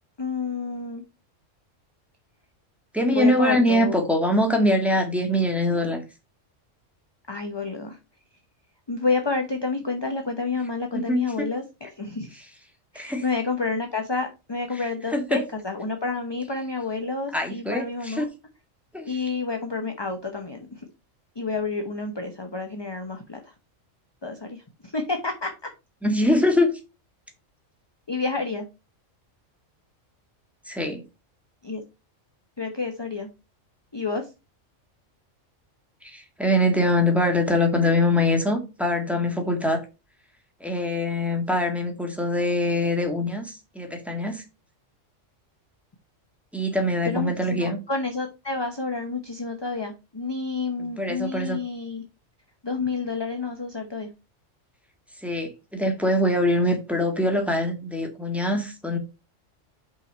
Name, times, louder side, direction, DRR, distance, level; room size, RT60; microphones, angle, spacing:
voice 1, 0.2-1.0 3.1-4.0 7.3-8.0 8.9-12.4 12.9-18.3 19.0-20.8 21.4-23.5 24.2-25.5 28.1-28.7 31.6-31.8 32.6-33.3 33.9-34.3 47.0-52.0 52.6-54.1, left 4 dB, 25° left, 0.9 m, -29 dB
voice 2, 2.9-6.0 10.9-11.5 12.9-13.2 15.1-15.4 17.3-18.3 18.9-19.1 26.0-26.8 30.6-31.0 36.0-39.8 40.6-44.4 46.5-47.8 50.8-51.6 55.2-59.0, left 1 dB, ahead, 1.6 m, -23 dB
5.6 x 5.0 x 5.3 m
omnidirectional pair, 1.3 m